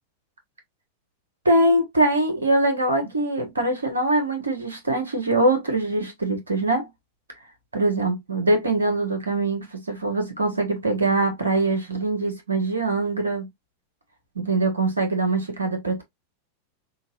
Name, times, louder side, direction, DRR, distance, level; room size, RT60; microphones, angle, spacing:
voice 1, 1.4-6.9 7.7-13.4 14.3-16.0, right 2 dB, 75° right, 1.4 m, -23 dB
5.6 x 2.6 x 2.6 m
figure-of-eight pair, 90°, 0 cm